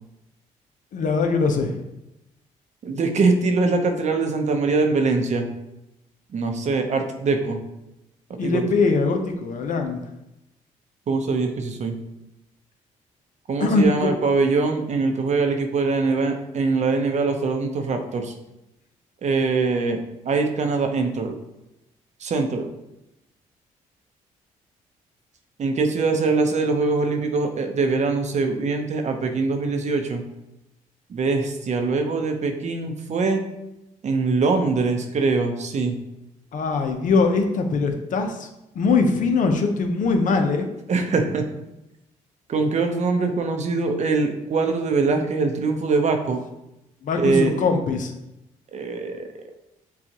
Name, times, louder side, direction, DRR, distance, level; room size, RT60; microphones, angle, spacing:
voice 1, 0.9-1.8 8.4-10.0 13.6-14.1 36.5-38.5 38.7-40.7 47.0-48.1, left 4 dB, 60° left, 5 dB, 0.7 m, -21 dB
voice 2, 2.8-5.5 6.3-7.6 8.4-8.6 11.1-12.0 13.5-18.3 19.2-20.0 20.3-21.3 22.2-22.7 25.6-30.2 31.1-33.4 34.0-36.0 40.9-41.5 42.5-46.4 47.2-47.5 48.7-49.3, right 4 dB, 50° right, 5 dB, 0.7 m, -23 dB
6.9 x 2.4 x 2.9 m, 0.90 s
supercardioid pair, 70°, 15 cm